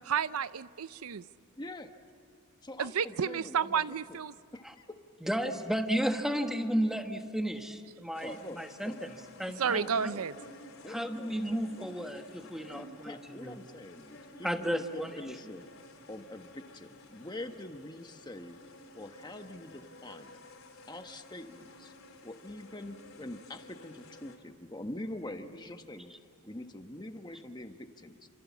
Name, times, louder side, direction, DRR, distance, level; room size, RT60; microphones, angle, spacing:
voice 1, 0.1-1.2 2.8-4.3 9.6-10.3, right 7 dB, 75° right, 15 dB, 0.6 m, -31 dB
voice 2, 1.6-1.9 2.6-3.8 4.1-4.2 4.5-5.0 8.2-9.0 9.6-10.3 10.8-11.9 12.8-15.7 16.1-18.6 18.9-20.4 20.9-21.9 22.2-26.1 26.4-28.3, left 1 dB, 20° left, 6 dB, 1.3 m, -44 dB
voice 3, 5.2-10.1 10.9-13.6 14.4-15.1, equal, ahead, 5 dB, 1.3 m, -33 dB
sound 1, 8.1-24.4, left 2 dB, 65° left, 4.1 m, -53 dB
29.5 x 26.5 x 7.3 m, 2.4 s
head